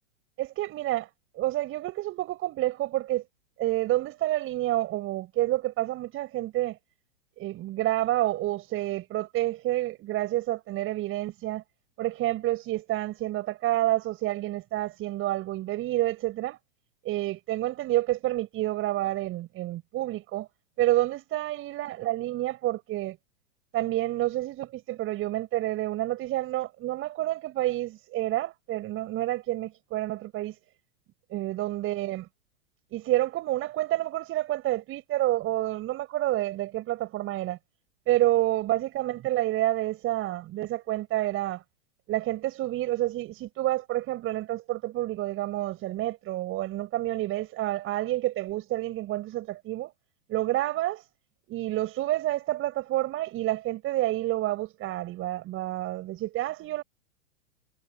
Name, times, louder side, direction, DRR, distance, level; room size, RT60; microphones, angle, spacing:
voice 1, 0.4-3.2 3.6-6.8 7.4-11.6 12.0-16.6 17.0-20.5 20.8-23.2 23.7-30.6 31.3-32.3 32.9-37.6 38.1-41.6 42.1-49.9 50.3-51.0 51.5-56.8, right 15 dB, 35° right, 7.0 m, -29 dB
hypercardioid pair, 110°, 37 cm